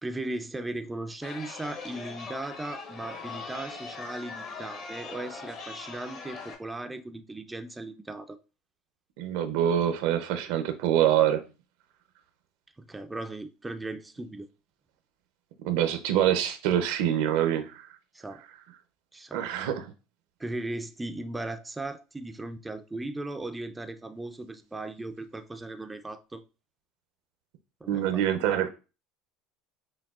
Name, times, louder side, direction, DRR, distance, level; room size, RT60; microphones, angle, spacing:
voice 1, 0.0-8.4 12.8-14.5 18.1-18.4 19.1-19.4 20.4-26.4 27.8-28.3, right 2 dB, 10° right, 0.3 m, -37 dB
Chatter, 1.2-6.5, left 4 dB, 45° left, 0.9 m, -41 dB
voice 2, 9.2-11.4 15.6-17.9 19.3-19.9 27.9-28.7, right 10 dB, 75° right, 0.5 m, -25 dB
5.9 x 2.3 x 2.4 m
supercardioid pair, 115°, 0 cm